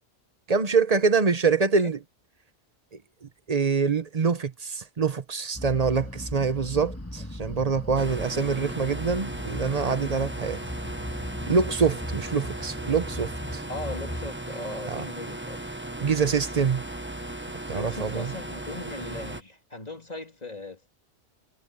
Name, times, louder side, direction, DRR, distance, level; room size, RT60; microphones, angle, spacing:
voice 1, 0.5-2.0 3.2-10.6 11.5-13.6 14.9-15.0 16.0-16.8 17.7-18.3, right 5 dB, 40° right, 1.0 m, -25 dB
voice 2, 1.4-1.9 13.7-15.6 17.7-20.9, left 2 dB, 40° left, 3.4 m, -38 dB
sound 1, 5.6-14.3, left 1 dB, 15° left, 1.8 m, -37 dB
sound 2, 7.9-19.4, right 1 dB, 10° right, 1.2 m, -37 dB
omnidirectional pair, 1.1 m